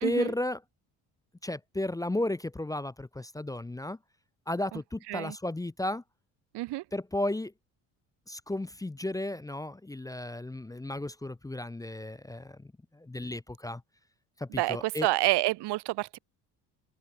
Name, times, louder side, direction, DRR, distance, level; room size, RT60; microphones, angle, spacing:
voice 1, 0.0-0.6 1.4-4.0 4.5-6.0 6.9-7.5 8.3-13.8 14.4-15.1, left 1 dB, 10° left, 0.6 m, -34 dB
voice 2, 14.5-16.2, right 18 dB, 75° right, 0.9 m, -28 dB
open air
cardioid pair, 105°, 40 cm